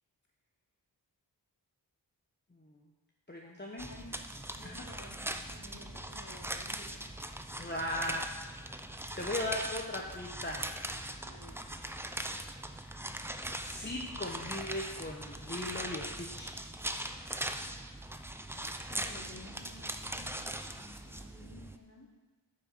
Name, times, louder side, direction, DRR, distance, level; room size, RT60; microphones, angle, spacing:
voice 1, 3.3-3.9 4.6-4.8 7.5-8.2 9.2-10.7 13.6-16.5, left 1 dB, 25° left, -2 dB, 1.1 m, -38 dB
sound 1, 3.8-21.8, right 1 dB, 5° right, 0.6 m, -40 dB
voice 2, 4.5-7.4 11.2-11.6 18.8-22.1, left 1 dB, 40° left, -3 dB, 2.7 m, -53 dB
9.4 x 6.6 x 6.2 m, 1.3 s
wide cardioid pair, 75°, 42 cm